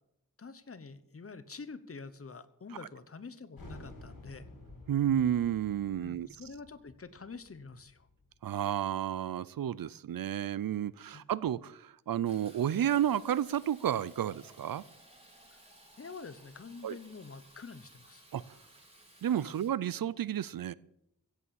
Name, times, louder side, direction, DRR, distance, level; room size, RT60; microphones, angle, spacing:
voice 1, 0.4-4.4 6.0-8.1 11.1-11.2 15.5-15.6 16.0-18.2 19.4-19.5, left 4 dB, 40° left, 13 dB, 1.0 m, -47 dB
sound 1, 3.6-8.9, left 2 dB, 80° left, 5.4 m, -52 dB
voice 2, 4.9-6.3 8.4-14.8 16.8-17.0 18.3-18.4 19.2-20.7, right 10 dB, 80° right, 20 dB, 0.6 m, -31 dB
Fill (with liquid), 12.3-19.7, right 1 dB, 15° right, 4.9 m, -57 dB
16.0 x 8.3 x 7.2 m, 0.79 s
wide cardioid pair, 105°, 34 cm